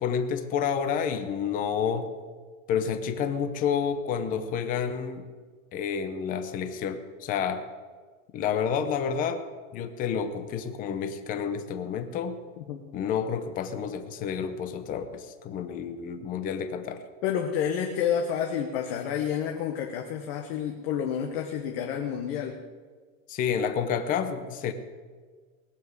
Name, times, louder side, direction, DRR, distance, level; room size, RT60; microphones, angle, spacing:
voice 1, 0.0-2.1 2.7-5.3 5.7-7.6 8.3-9.4 9.7-12.4 12.9-17.0 23.3-24.7, left 7 dB, 20° left, 9 dB, 0.7 m, -29 dB
voice 2, 17.2-22.6, left 8 dB, 50° left, 3 dB, 1.3 m, -29 dB
19.5 x 7.3 x 8.0 m, 1.5 s
supercardioid pair, 170°, 39 cm